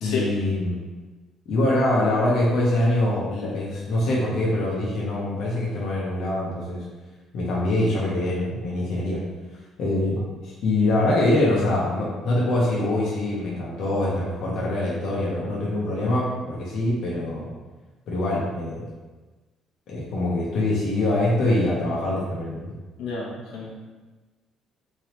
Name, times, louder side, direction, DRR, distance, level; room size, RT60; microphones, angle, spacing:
voice 1, 0.0-0.8 1.5-6.8 7.3-9.2 9.8-10.2 10.4-17.5 18.1-18.8 19.9-22.7, left 1 dB, 55° left, -5 dB, 0.8 m, -24 dB
voice 2, 23.0-23.7, left 5 dB, 90° left, -4 dB, 1.0 m, -30 dB
3.7 x 3.3 x 3.0 m, 1.2 s
cardioid pair, 170°, 0 cm